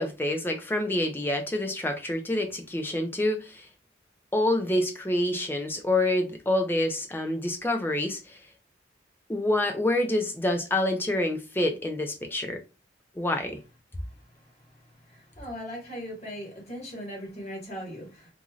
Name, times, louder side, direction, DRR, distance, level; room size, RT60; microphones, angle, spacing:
voice 1, 0.0-3.7 4.3-8.4 9.3-12.6 13.2-13.6, left 1 dB, 10° left, 0.5 m, -27 dB
voice 2, 15.1-18.3, equal, 35° left, 1.4 m, -39 dB
3.1 x 2.6 x 2.4 m
head